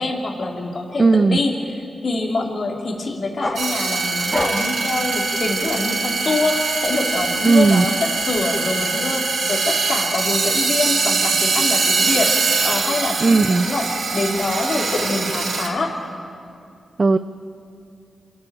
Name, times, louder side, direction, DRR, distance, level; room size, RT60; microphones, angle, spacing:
voice 1, 0.0-1.5 2.0-13.8 14.1-15.9, left 2 dB, 60° left, 0 dB, 3.2 m, -25 dB
voice 2, 1.0-1.4 7.5-7.8 13.2-13.7 17.0-17.2, right 3 dB, 40° right, 11 dB, 0.5 m, -15 dB
sound 1, 3.4-6.0 6.4-8.4, left 1 dB, 20° left, 2.4 m, -30 dB
sound 2, 3.6-15.7, right 4 dB, 75° right, 2.5 m, -22 dB
26.5 x 12.0 x 8.9 m, 2.4 s
cardioid pair, 70°, 0 cm